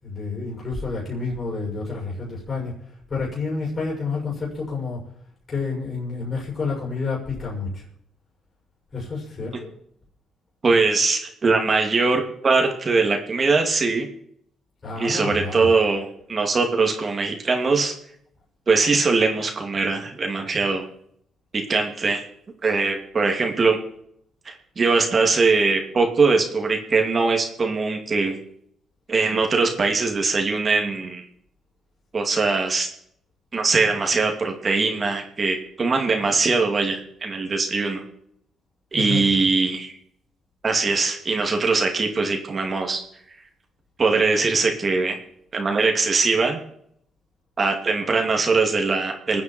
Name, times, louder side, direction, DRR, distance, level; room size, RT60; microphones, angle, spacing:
voice 1, 0.0-2.8 3.1-5.0 5.5-7.8 8.9-9.7 14.8-15.7 38.9-39.5, left 4 dB, 40° left, -3 dB, 7.0 m, -29 dB
voice 2, 10.6-14.1 15.0-17.9 18.7-20.8 21.5-22.2 22.6-23.8 24.4-28.4 29.1-31.2 32.1-32.9 33.5-38.0 38.9-40.0 40.6-43.0 44.0-45.2 45.5-46.6 47.6-49.4, right 4 dB, 35° right, 2 dB, 2.8 m, -21 dB
25.5 x 9.5 x 4.6 m, 0.70 s
cardioid pair, 90°, 0 cm